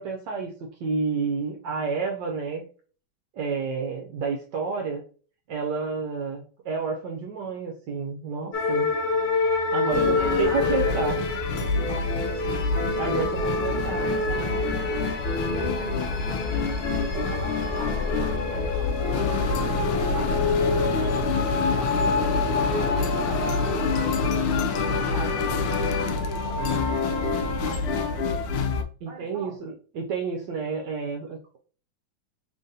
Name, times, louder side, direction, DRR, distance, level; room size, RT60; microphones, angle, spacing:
voice 1, 0.0-2.6 3.3-5.0 5.5-8.9 9.7-11.2 13.0-14.1 29.0-31.6, right 5 dB, 70° right, 2 dB, 1.1 m, -30 dB
sound 1, 8.5-27.5, left 4 dB, 60° left, 1.2 m, -28 dB
sound 2, 9.9-28.8, left 4 dB, 85° left, 1.5 m, -27 dB
voice 2, 10.2-11.1 11.6-15.1 15.4-27.3 27.6-28.3 29.0-29.6, right 4 dB, 40° right, 0 dB, 0.8 m, -43 dB
3.8 x 3.6 x 2.6 m, 0.41 s
omnidirectional pair, 2.3 m